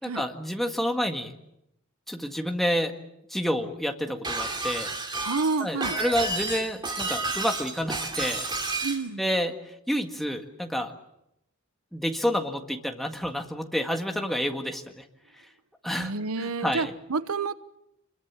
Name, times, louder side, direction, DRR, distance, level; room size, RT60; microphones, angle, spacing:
voice 1, 0.0-1.3 2.1-2.9 3.3-5.0 5.6-8.5 9.2-10.9 11.9-15.0 15.8-16.9, equal, ahead, 3 dB, 1.8 m, -29 dB
Shatter, 4.2-9.0, right 2 dB, 20° right, 2.9 m, -31 dB
voice 2, 5.2-6.0 8.8-9.2 16.0-17.5, right 4 dB, 85° right, 14 dB, 1.0 m, -29 dB
26.0 x 22.5 x 7.4 m, 0.82 s
head